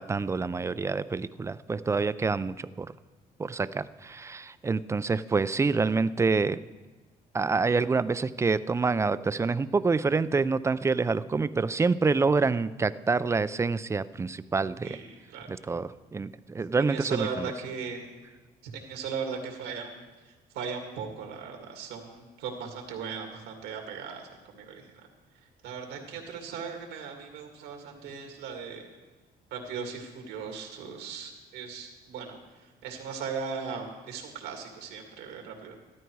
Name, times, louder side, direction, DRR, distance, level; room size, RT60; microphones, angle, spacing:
voice 1, 0.0-2.9 3.4-6.6 7.3-15.0 15.5-17.5, right 4 dB, 15° right, 15 dB, 0.4 m, -27 dB
voice 2, 16.7-18.1 18.7-20.0 20.5-24.2 24.5-24.9 25.6-28.8 29.5-32.4 32.8-35.8, right 6 dB, 90° right, 2 dB, 2.4 m, -37 dB
14.0 x 12.5 x 4.7 m, 1.2 s
cardioid pair, 110°, 17 cm